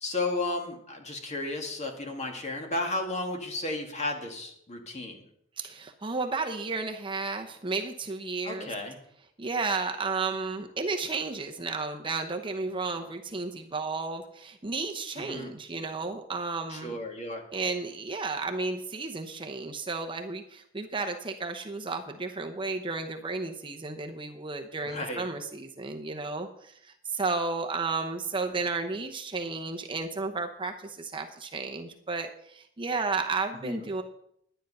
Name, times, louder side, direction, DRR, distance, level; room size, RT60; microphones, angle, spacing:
voice 1, 0.0-5.2 8.4-9.0 15.2-15.6 16.7-17.4 24.8-25.2 33.6-33.9, left 2 dB, 35° left, 3 dB, 2.0 m, -33 dB
voice 2, 5.6-8.7 9.4-17.0 17.5-34.0, right 3 dB, 25° right, 4 dB, 0.8 m, -33 dB
10.5 x 10.0 x 5.4 m, 0.70 s
head